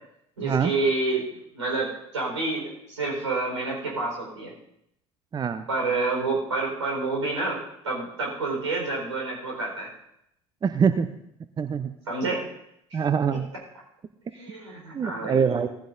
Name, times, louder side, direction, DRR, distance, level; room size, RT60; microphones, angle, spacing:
voice 1, 0.4-1.2 1.5-4.5 5.7-7.6 7.8-9.9 12.1-12.5 12.9-13.0 14.3-15.4, right 3 dB, 80° right, -2 dB, 4.6 m, -28 dB
voice 2, 5.3-5.6 10.6-11.1 11.6-11.9 12.9-13.5 14.9-15.7, right 6 dB, 25° right, 11 dB, 0.7 m, -24 dB
17.0 x 15.0 x 2.7 m, 0.77 s
figure-of-eight pair, 60°, 15 cm